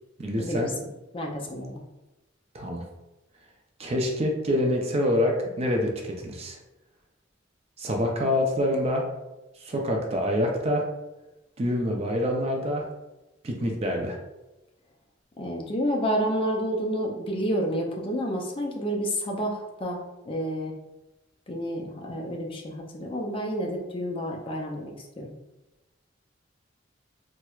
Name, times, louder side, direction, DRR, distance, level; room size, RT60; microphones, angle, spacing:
voice 1, 0.2-0.7 2.5-2.8 3.8-6.6 7.8-9.1 9.6-10.9 11.6-12.9 13.4-14.2, left 1 dB, 30° right, 1 dB, 0.4 m, -26 dB
voice 2, 1.1-1.8 15.4-20.0 20.3-20.7 21.5-25.3, equal, 25° left, -1 dB, 0.4 m, -29 dB
4.3 x 2.1 x 2.3 m, 1.0 s
head